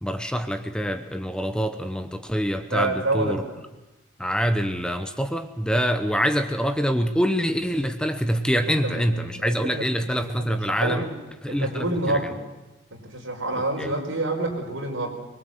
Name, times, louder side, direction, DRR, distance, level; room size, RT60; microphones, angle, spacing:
voice 1, 0.0-3.4 4.2-11.0 11.4-12.3 13.8-13.9, equal, 5° left, 8 dB, 0.9 m, -25 dB
voice 2, 2.7-3.4 8.5-9.8 10.1-11.1 11.5-12.4 12.9-15.1, right 2 dB, 80° right, 2 dB, 4.8 m, -28 dB
24.0 x 21.5 x 7.9 m, 1.0 s
head